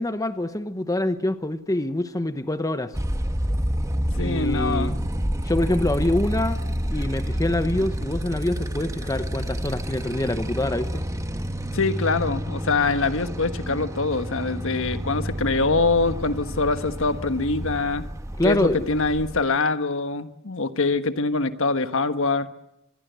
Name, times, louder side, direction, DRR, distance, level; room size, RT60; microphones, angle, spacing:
voice 1, 0.0-2.9 4.2-5.0 5.4-6.6 6.9-11.1 18.4-18.9, left 1 dB, 15° left, 1.0 m, -25 dB
Motorcycle, 2.9-19.4, equal, 15° right, 1.4 m, -29 dB
voice 2, 4.2-4.9 11.7-18.1 18.4-22.5, left 3 dB, 65° left, 1.3 m, -24 dB
25.5 x 21.0 x 8.2 m
head